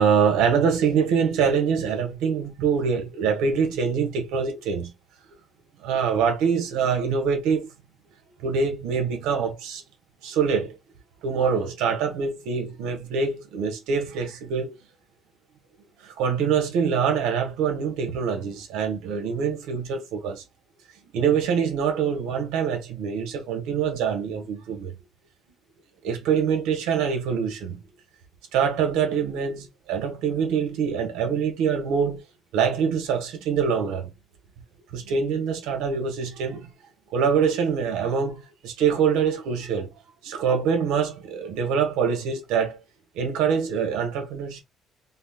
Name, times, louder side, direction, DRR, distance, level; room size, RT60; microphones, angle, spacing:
voice 1, 0.0-4.9 5.8-7.7 8.4-9.8 10.2-10.8 11.2-14.8 16.0-20.4 21.0-25.0 26.0-27.8 28.5-32.2 32.5-34.1 34.9-36.7 37.1-39.9 40.2-42.8 43.1-44.6, right 6 dB, 90° right, 1.1 m, -24 dB
3.9 x 2.1 x 2.3 m
cardioid pair, 110°, 0 cm